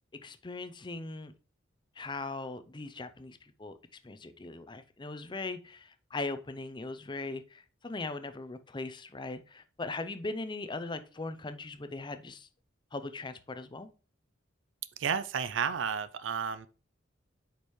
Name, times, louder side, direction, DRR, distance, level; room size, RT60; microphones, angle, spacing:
voice 1, 0.1-1.3 2.0-3.7 4.0-12.5 12.9-13.9, left 3 dB, 25° left, 0.6 m, -39 dB
voice 2, 15.0-16.7, right 7 dB, 75° right, 0.5 m, -32 dB
8.5 x 5.2 x 3.1 m
head